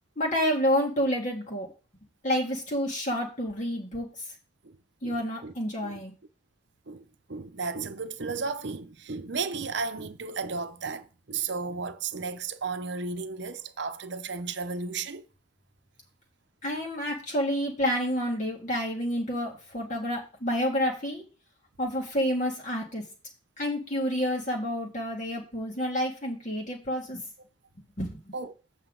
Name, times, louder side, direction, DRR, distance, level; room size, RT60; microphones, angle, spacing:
voice 1, 0.2-1.7 2.2-4.1 5.0-6.1 16.6-21.2 21.8-23.0 23.6-27.2 28.0-28.2, equal, 40° left, 1.9 m, -29 dB
voice 2, 5.0-5.5 5.8-6.0 6.9-15.3 28.3-28.5, right 4 dB, 60° right, 0.8 m, -34 dB
8.0 x 6.7 x 3.9 m
head